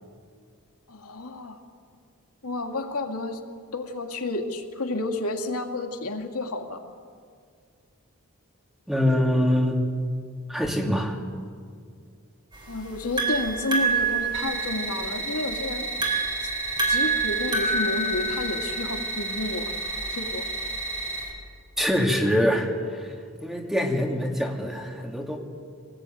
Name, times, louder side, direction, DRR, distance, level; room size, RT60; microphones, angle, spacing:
voice 1, 0.9-1.6 2.4-3.4 3.7-6.8 12.7-15.9 16.4-16.5 16.9-19.7 20.1-20.4, left 2 dB, 85° left, 3 dB, 2.5 m, -31 dB
voice 2, 8.9-9.8 10.5-11.2 21.8-23.1 23.4-25.4, equal, ahead, 0 dB, 2.7 m, -24 dB
sound 1, 12.5-21.3, right 3 dB, 20° right, 5.0 m, -28 dB
sound 2, 14.3-21.2, right 2 dB, 55° right, 7.3 m, -32 dB
25.5 x 19.5 x 9.3 m, 2.2 s
head